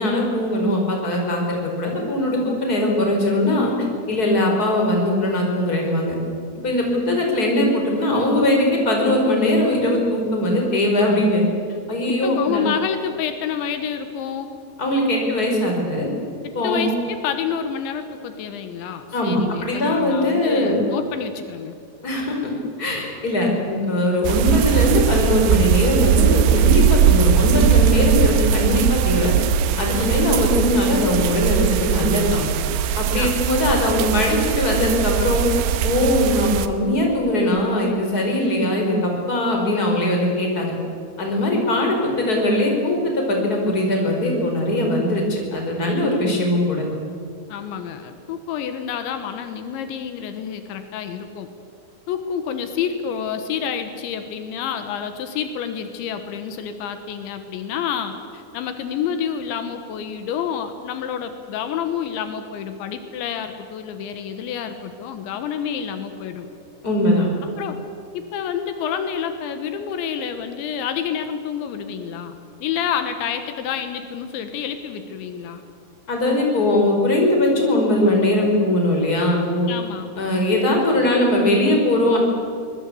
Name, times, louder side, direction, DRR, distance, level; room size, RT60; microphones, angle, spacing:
voice 1, 0.0-6.1 6.6-11.5 11.9-12.6 14.8-16.1 16.5-16.9 19.1-20.8 22.0-22.5 22.8-29.4 29.8-32.4 33.0-35.5 35.8-40.7 41.2-46.8 66.8-67.3 76.1-79.7 80.2-82.2, left 1 dB, 20° left, 1 dB, 4.8 m, -20 dB
voice 2, 12.1-14.5 16.4-21.8 30.0-30.2 33.1-33.4 47.5-51.5 52.1-66.5 67.6-67.8 68.1-75.6 79.7-80.1, left 8 dB, 80° left, 8 dB, 3.6 m, -28 dB
sound 1, 24.2-36.7, right 9 dB, 75° right, 3.0 m, -19 dB
25.0 x 20.5 x 8.4 m, 2.4 s
omnidirectional pair, 5.3 m